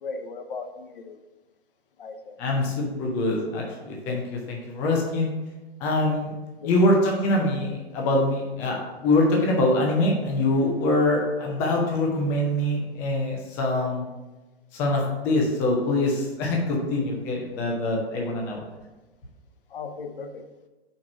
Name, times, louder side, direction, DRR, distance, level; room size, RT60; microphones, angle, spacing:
voice 1, 0.0-1.2 2.0-2.4 6.6-6.7 19.7-20.4, left 4 dB, 55° left, 7 dB, 0.8 m, -37 dB
voice 2, 2.4-5.3 5.8-6.3 6.6-14.1 14.7-18.6, left 1 dB, 10° left, -1 dB, 0.3 m, -24 dB
4.7 x 4.4 x 5.9 m, 1.1 s
figure-of-eight pair, 115°, 32 cm